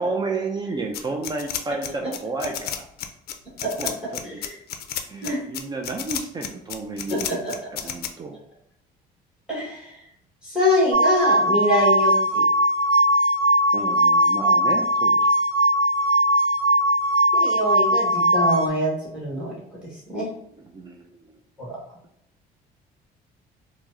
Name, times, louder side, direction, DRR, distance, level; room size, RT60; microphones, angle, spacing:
voice 1, 0.0-2.9 3.8-4.4 5.1-8.4 13.7-15.3 20.6-21.2, right 3 dB, 25° right, 2 dB, 0.4 m, -31 dB
sound 1, 0.9-8.1, left 9 dB, 65° left, 0.4 m, -31 dB
voice 2, 4.2-4.5 5.2-5.4 7.1-7.4 9.5-10.0 10.4-12.4 17.3-19.6 19.8-20.3 21.6-21.7, left 1 dB, 5° right, -5 dB, 1.2 m, -24 dB
sound 2, 10.9-18.7, right 1 dB, 75° right, 0.9 m, -19 dB
4.4 x 2.0 x 2.5 m, 0.75 s
cardioid pair, 110°, 17 cm